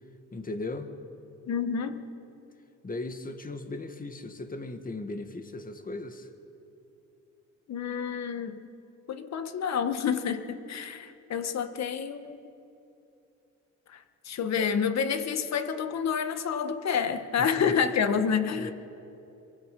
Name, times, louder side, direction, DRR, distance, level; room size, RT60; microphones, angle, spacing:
voice 1, 0.3-1.0 2.8-6.3 17.4-17.8 18.5-18.7, left 2 dB, 30° left, 7 dB, 2.0 m, -37 dB
voice 2, 1.5-2.1 7.7-8.6 9.1-12.4 13.9-18.7, left 7 dB, 60° left, 9 dB, 1.6 m, -29 dB
27.0 x 23.0 x 5.5 m, 2.8 s
cardioid pair, 90°, 30 cm